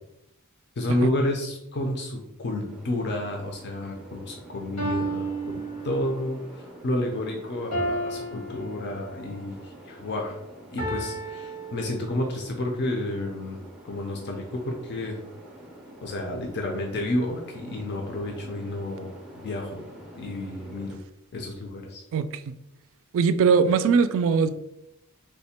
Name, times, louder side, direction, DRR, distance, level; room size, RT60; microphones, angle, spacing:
voice 1, 0.8-10.4 10.7-15.2 16.0-19.9 20.1-21.0 21.3-22.0, left 1 dB, 50° left, 1 dB, 0.6 m, -30 dB
sound 1, 2.7-21.0, right 1 dB, 5° right, 0.5 m, -47 dB
sound 2, 4.0-4.1 4.8-6.4 7.7-9.3 10.8-12.4, right 2 dB, 90° left, 1.5 m, -33 dB
voice 2, 23.1-24.5, right 5 dB, 65° right, 13 dB, 0.3 m, -20 dB
3.3 x 2.1 x 4.2 m, 0.84 s
head